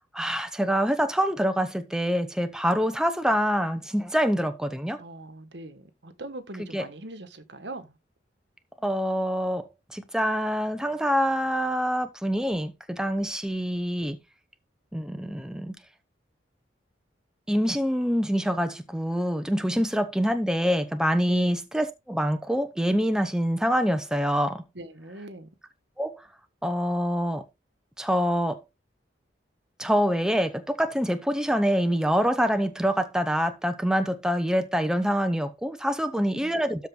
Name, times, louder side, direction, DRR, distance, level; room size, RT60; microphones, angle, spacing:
voice 1, 0.1-5.0 6.7-6.8 8.8-9.7 9.9-14.2 14.9-15.8 17.5-24.6 26.0-26.2 26.6-27.4 28.0-28.6 29.8-36.9, equal, 5° right, 0.8 m, -25 dB
voice 2, 5.0-8.0 19.6-19.8 21.3-21.5 24.7-25.5 36.2-36.6, right 2 dB, 70° right, 1.6 m, -41 dB
13.0 x 4.5 x 3.9 m
head